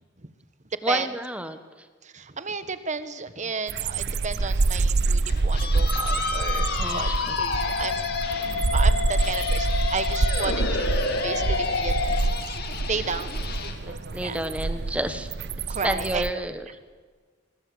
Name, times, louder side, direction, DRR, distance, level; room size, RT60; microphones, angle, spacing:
voice 1, 0.8-1.6 6.8-7.0 7.3-7.4 13.9-15.3 15.8-16.6, right 1 dB, 5° right, 9 dB, 1.4 m, -29 dB
voice 2, 2.0-7.1 7.4-8.1 8.7-12.2 12.9-13.3 14.2-14.4 15.7-16.3, right 5 dB, 40° right, 12 dB, 1.4 m, -32 dB
sound 1, 3.7-16.3, right 3 dB, 60° right, 0.7 m, -26 dB
sound 2, 5.0-14.7, left 6 dB, 55° left, 2.4 m, -37 dB
Musical instrument, 5.9-12.2, left 3 dB, 80° left, 3.5 m, -28 dB
23.5 x 21.5 x 8.0 m, 1.5 s
head